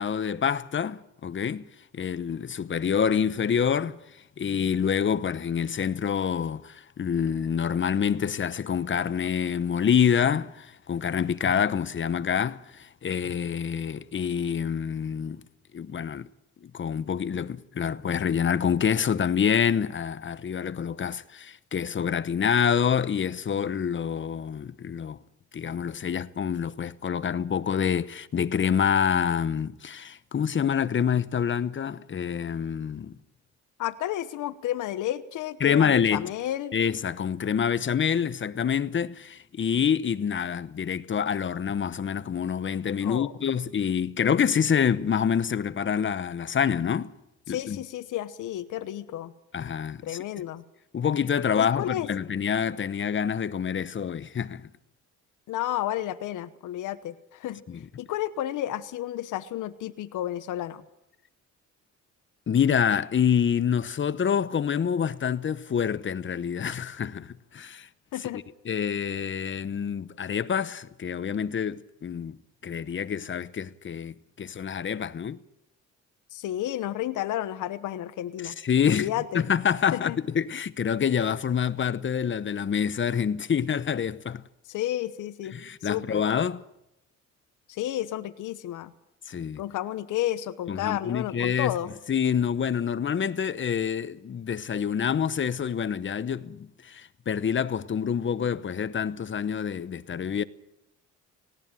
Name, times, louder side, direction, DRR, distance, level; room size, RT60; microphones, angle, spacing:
voice 1, 0.0-1.7 1.9-4.0 4.4-15.4 15.7-16.3 16.6-25.2 25.5-33.2 35.6-36.3 36.7-47.1 47.5-47.8 49.5-50.2 50.9-54.7 57.7-57.8 62.5-67.9 68.2-72.4 72.6-75.4 78.4-84.5 85.5-86.6 89.3-89.6 90.7-91.8 92.1-100.4, left 7 dB, 40° left, 1.0 m, -27 dB
voice 2, 33.8-36.7 43.0-43.3 47.5-49.3 50.0-50.6 51.5-52.1 55.5-57.6 58.0-60.8 68.1-68.4 76.3-78.6 78.9-79.4 79.9-80.2 84.7-85.5 85.8-86.2 87.7-88.9 89.6-91.9, left 13 dB, 85° left, 1.1 m, -31 dB
19.0 x 17.5 x 9.1 m
cardioid pair, 90°, 30 cm